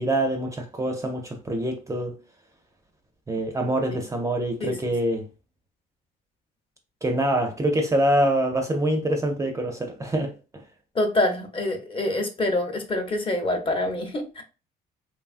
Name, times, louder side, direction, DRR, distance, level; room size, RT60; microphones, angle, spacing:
voice 1, 0.0-2.2 3.3-5.3 7.0-10.3, right 1 dB, 20° right, 0.4 m, -25 dB
voice 2, 10.9-14.4, left 1 dB, 30° left, 0.7 m, -26 dB
2.9 x 2.3 x 2.4 m
cardioid pair, 110°, 17 cm